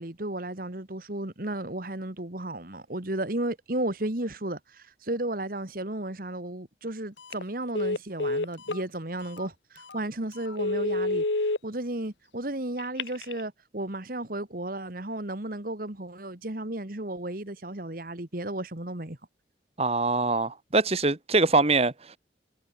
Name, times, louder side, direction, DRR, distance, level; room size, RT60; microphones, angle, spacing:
voice 1, 0.0-11.2 11.6-19.2, right 1 dB, 50° right, 2.0 m, -34 dB
Telephone, 7.2-7.4 7.7-8.8 9.4-9.5 9.9-10.0 10.5-11.6 12.8-13.4, left 2 dB, 80° left, 1.9 m, -28 dB
voice 2, 19.8-22.2, right 3 dB, 35° right, 1.4 m, -24 dB
head